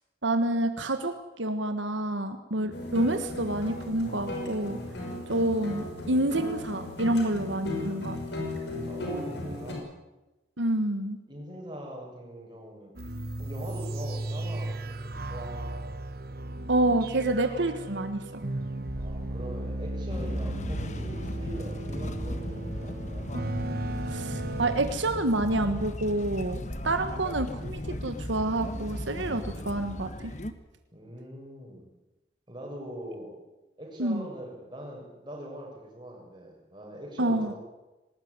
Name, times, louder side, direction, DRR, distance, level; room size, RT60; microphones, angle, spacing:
voice 1, 0.2-4.8 5.3-8.2 10.6-11.2 16.7-18.4 24.1-30.3 34.0-34.2 37.2-37.5, right 1 dB, 85° right, 8 dB, 1.5 m, -28 dB
voice 2, 2.5-2.9 5.0-5.4 8.8-9.9 11.3-13.0 13.4-15.8 18.9-23.3 30.9-31.8 32.5-33.4 33.8-37.6, right 1 dB, 25° right, -1 dB, 6.8 m, -42 dB
sound 1, 2.7-9.7, left 1 dB, 65° left, 5.7 m, -36 dB
sound 2, 13.0-24.8, right 1 dB, 55° right, 1.2 m, -35 dB
sound 3, 20.1-30.5, left 1 dB, 40° left, 1.4 m, -36 dB
20.0 x 18.5 x 9.7 m, 1.0 s
head